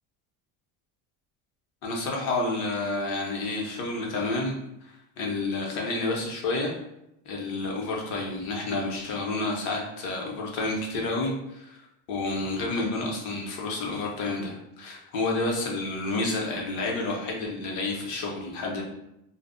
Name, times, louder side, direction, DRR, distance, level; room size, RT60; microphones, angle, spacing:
voice 1, 1.8-4.6 4.8-6.7 7.2-11.8 12.1-18.8, left 2 dB, 45° left, -1 dB, 0.6 m, -30 dB
2.0 x 2.0 x 3.5 m, 0.83 s
cardioid pair, 170°, 43 cm